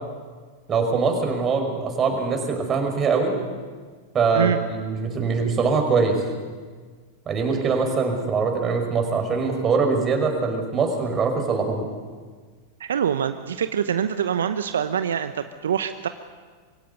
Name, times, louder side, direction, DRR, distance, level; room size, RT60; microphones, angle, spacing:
voice 1, 0.7-3.4 4.1-6.2 7.3-11.9, right 4 dB, 30° right, 3 dB, 5.4 m, -23 dB
voice 2, 12.8-16.1, right 8 dB, 80° right, 10 dB, 0.9 m, -25 dB
23.0 x 16.5 x 9.5 m, 1.5 s
hypercardioid pair, 100°, 0 cm